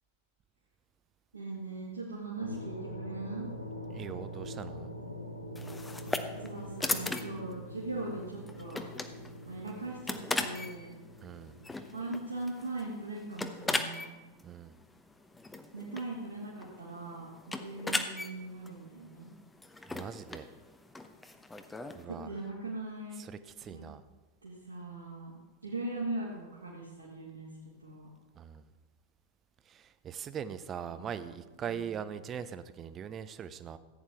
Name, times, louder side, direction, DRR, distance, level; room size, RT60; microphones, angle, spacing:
voice 1, 1.3-3.5 6.2-8.8 9.5-11.0 11.9-14.1 15.7-19.3 22.1-23.3 23.7-23.8 24.4-25.3 25.6-28.1 30.8-31.3 31.6-31.8 32.2-32.3, right 2 dB, 80° right, -6 dB, 2.1 m, -40 dB
sound 1, 2.4-12.3, equal, 90° left, 1.0 m, -44 dB
voice 2, 3.9-4.9 11.2-11.6 14.4-14.7 19.9-20.5 21.9-22.3 23.3-24.0 28.3-28.7 29.7-33.8, right 8 dB, 25° right, 13 dB, 0.6 m, -41 dB
sound 2, 5.5-22.0, left 2 dB, 10° left, 0.8 m, -39 dB
15.0 x 8.9 x 3.6 m, 1.2 s
figure-of-eight pair, 90°, 0 cm